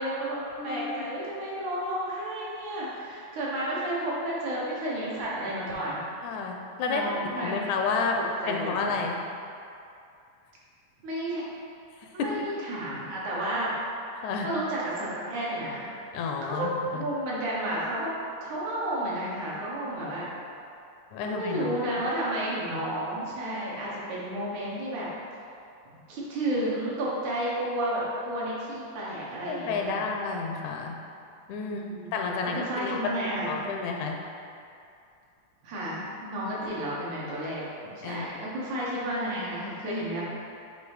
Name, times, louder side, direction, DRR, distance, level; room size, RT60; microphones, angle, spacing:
voice 1, 0.0-6.0 6.9-7.6 8.4-8.8 11.0-11.4 12.1-13.7 14.4-15.9 16.4-18.2 18.4-20.3 21.2-25.1 26.1-30.1 31.5-32.1 32.4-33.5 35.6-37.6 38.0-40.2, right 1 dB, 75° right, -6 dB, 2.5 m, -32 dB
voice 2, 0.6-1.1 6.2-7.1 7.4-8.2 8.5-9.2 12.0-12.5 14.2-14.5 16.1-17.0 21.1-21.8 22.7-22.8 29.5-31.0 31.5-31.8 32.1-33.1 33.5-34.2 38.0-38.4, left 4 dB, 80° left, 2 dB, 1.8 m, -31 dB
7.9 x 2.7 x 4.7 m, 2.5 s
omnidirectional pair, 3.5 m